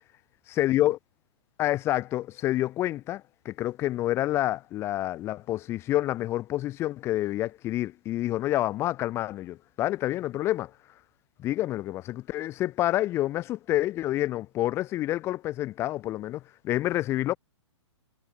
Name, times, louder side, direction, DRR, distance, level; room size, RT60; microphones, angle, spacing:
voice 1, 0.5-1.0 1.6-10.7 11.4-17.4, left 14 dB, 15° left, 0.4 m, -28 dB
figure-of-eight pair, 120°, 15 cm